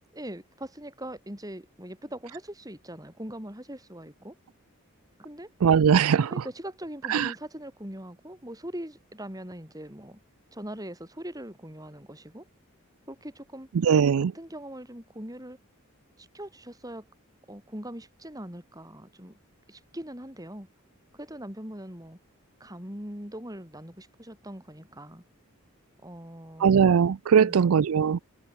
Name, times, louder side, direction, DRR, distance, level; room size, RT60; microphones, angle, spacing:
voice 1, 0.1-4.4 5.2-5.5 6.3-10.2 10.5-12.5 13.1-13.7 14.2-15.6 16.2-17.1 17.5-19.4 19.7-20.7 21.1-22.2 22.6-25.2 26.0-26.7 27.4-27.7, right 1 dB, 15° right, 6.9 m, -41 dB
voice 2, 5.6-6.3 7.1-7.3 13.8-14.3 26.6-28.2, right 7 dB, 80° right, 0.4 m, -20 dB
head